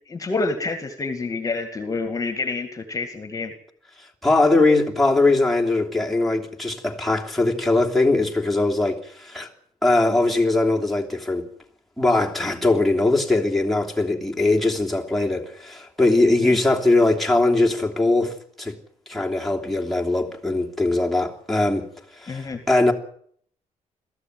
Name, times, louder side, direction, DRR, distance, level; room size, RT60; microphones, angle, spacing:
voice 1, 0.1-3.5 16.4-16.6 22.3-22.6, left 3 dB, 25° left, 2.2 m, -28 dB
voice 2, 4.2-9.5 9.8-11.5 12.0-18.7 19.1-21.9 22.1-22.9, left 2 dB, ahead, 3.0 m, -21 dB
22.0 x 14.5 x 9.5 m
cardioid pair, 160°, 13 cm